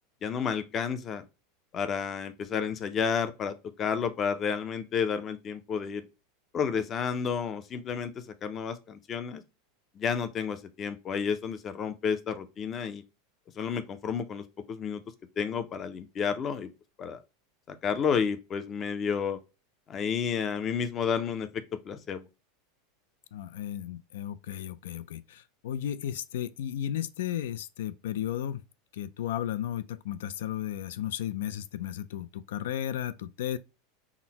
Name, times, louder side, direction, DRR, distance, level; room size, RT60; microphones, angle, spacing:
voice 1, 0.2-1.2 1.7-6.0 6.5-9.4 10.0-13.0 13.6-15.0 15.4-16.7 17.0-17.2 17.7-19.4 19.9-22.3, left 6 dB, 20° left, 0.4 m, -31 dB
voice 2, 23.3-28.6 28.9-33.6, left 11 dB, 85° left, 0.3 m, -34 dB
5.7 x 2.0 x 2.8 m
supercardioid pair, 175°, 0 cm